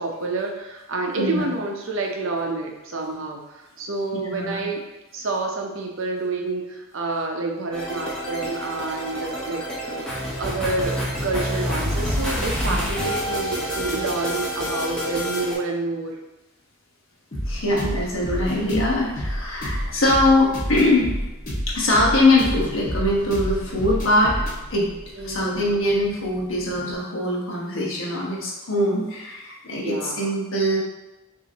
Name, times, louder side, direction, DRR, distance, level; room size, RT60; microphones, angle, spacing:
voice 1, 0.0-4.8 5.1-10.1 10.4-11.0 11.2-16.2 25.2-25.8 29.8-30.3, right 3 dB, 60° right, 1 dB, 0.7 m, -28 dB
voice 2, 4.2-4.6 12.6-12.9 17.5-21.1 21.7-24.4 24.7-24.9 25.2-30.8, left 1 dB, 65° left, -4 dB, 1.2 m, -22 dB
sound 1, 7.7-15.5, equal, 5° left, 0.8 m, -28 dB
sound 2, 17.3-26.9, equal, 35° left, 1.4 m, -30 dB
6.8 x 2.7 x 2.8 m, 1.0 s
head